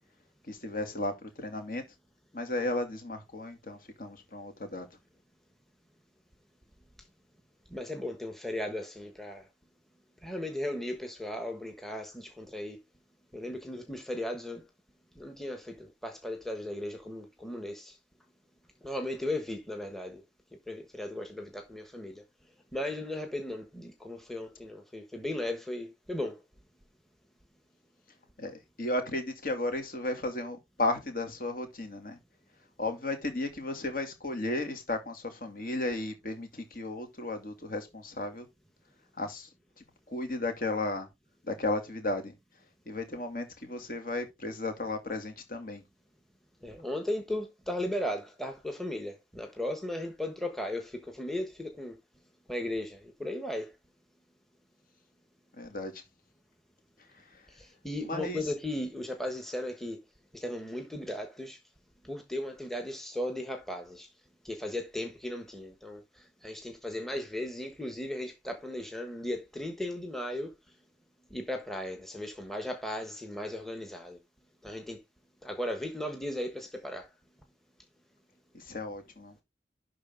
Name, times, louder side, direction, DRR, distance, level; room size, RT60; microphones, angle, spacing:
voice 1, 0.5-1.8 2.3-4.9 28.4-32.2 32.8-38.5 39.2-39.5 40.1-41.1 41.5-42.3 42.9-45.8 55.6-56.0 57.3-57.4 58.0-58.4 78.5-79.3, left 2 dB, 50° left, 2.5 m, -34 dB
voice 2, 7.7-9.5 10.2-12.8 13.3-14.6 15.1-18.0 18.8-20.2 20.7-22.2 22.7-26.4 46.6-52.0 52.5-53.7 57.5-60.0 60.3-61.6 62.0-64.1 64.4-70.5 71.3-74.2 74.6-75.0 75.4-77.1, left 1 dB, ahead, 1.2 m, -36 dB
11.5 x 4.0 x 3.8 m
head